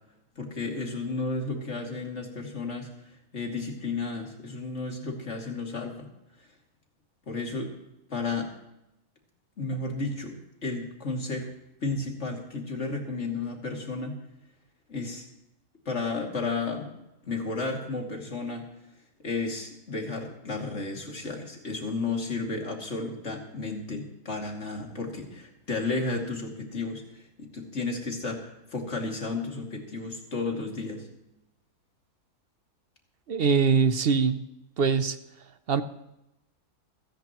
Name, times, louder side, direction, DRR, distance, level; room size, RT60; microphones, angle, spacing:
voice 1, 0.4-2.9 3.3-6.1 7.3-7.7 8.1-8.5 9.6-10.3 10.6-11.5 11.8-14.2 14.9-15.3 15.9-17.0 17.2-18.7 19.2-31.1, left 3 dB, 45° left, 1 dB, 2.7 m, -33 dB
voice 2, 33.3-34.4 34.8-35.2 35.7-35.8, right 5 dB, 55° right, 11 dB, 0.6 m, -22 dB
29.0 x 10.0 x 3.0 m, 0.89 s
omnidirectional pair, 1.7 m